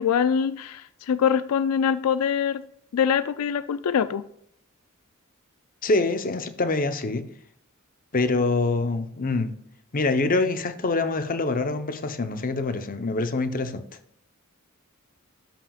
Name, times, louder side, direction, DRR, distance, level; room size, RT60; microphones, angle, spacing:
voice 1, 0.0-2.6 2.9-4.2, left 7 dB, 85° left, 0.4 m, -24 dB
voice 2, 5.8-7.2 8.1-9.5 9.9-13.8, left 3 dB, 40° left, 0.8 m, -25 dB
12.5 x 6.0 x 2.4 m
head